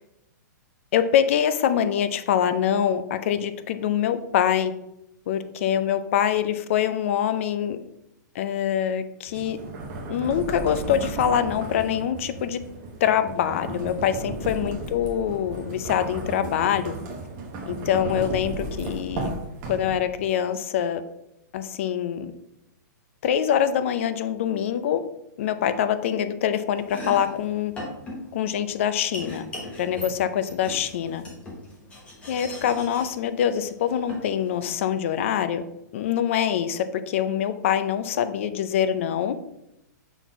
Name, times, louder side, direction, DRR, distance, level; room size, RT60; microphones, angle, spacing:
voice 1, 0.9-4.7 5.3-7.8 8.3-9.6 10.1-12.6 13.0-16.9 17.7-19.3 19.7-21.0 21.5-22.3 23.2-25.0 25.4-27.7 28.3-29.5 29.8-31.2 32.3-35.6 35.9-39.4, left 9 dB, 45° left, 11 dB, 0.5 m, -24 dB
sound 1, 9.3-20.2, right 2 dB, 25° right, 1.0 m, -34 dB
Domestic sounds home sounds, 26.7-35.0, left 1 dB, 10° left, 1.1 m, -40 dB
5.9 x 4.2 x 4.5 m, 0.85 s
hypercardioid pair, 165°, 10 cm